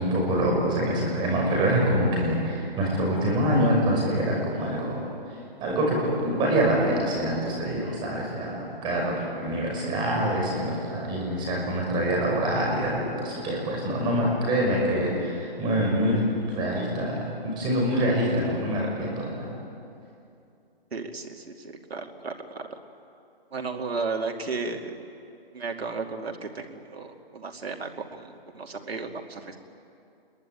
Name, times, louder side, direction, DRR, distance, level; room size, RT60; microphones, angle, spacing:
voice 1, 0.0-5.1 5.6-19.5, right 1 dB, 15° right, -2 dB, 6.1 m, -25 dB
voice 2, 20.9-22.6 23.5-24.9 25.5-29.6, right 4 dB, 80° right, 4 dB, 2.6 m, -34 dB
26.5 x 22.0 x 9.2 m, 2.6 s
hypercardioid pair, 160°, 30 cm